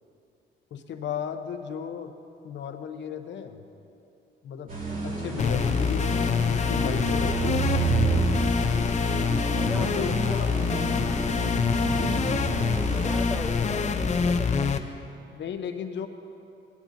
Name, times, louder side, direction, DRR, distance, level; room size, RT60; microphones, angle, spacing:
voice 1, 0.7-2.2 2.4-3.7 4.4-4.7 5.0-7.7 9.8-10.5 11.9-12.2 15.3-16.1, left 7 dB, 65° left, 7 dB, 0.9 m, -35 dB
sound 1, 4.7-13.2, right 4 dB, 45° right, 2.8 m, -30 dB
sound 2, 5.4-14.8, left 5 dB, 35° left, 0.6 m, -25 dB
voice 2, 9.5-10.0 10.3-10.8 12.9-14.9, left 1 dB, ahead, 4 dB, 0.9 m, -37 dB
17.0 x 12.0 x 2.7 m, 2.7 s
cardioid pair, 90°, 20 cm